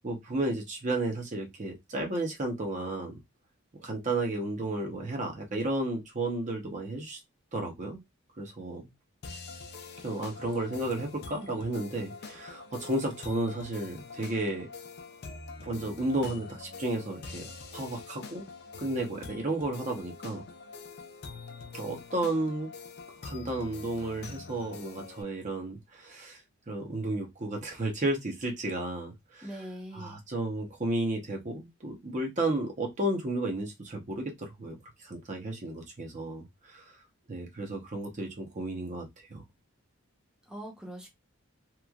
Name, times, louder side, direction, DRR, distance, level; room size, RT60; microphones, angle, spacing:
voice 1, 0.0-3.1 3.8-7.2 7.5-8.0 8.4-8.8 10.0-14.7 15.6-18.4 18.8-20.4 21.7-22.7 23.2-26.4 26.7-29.5 29.9-34.8 35.0-37.0 37.3-39.1 39.3-39.4, right 2 dB, 35° right, 0.7 m, -33 dB
sound 1, 9.2-25.2, left 4 dB, 55° left, 0.5 m, -45 dB
voice 2, 29.4-30.2 40.5-41.1, equal, 5° right, 0.8 m, -42 dB
3.0 x 2.4 x 2.3 m
head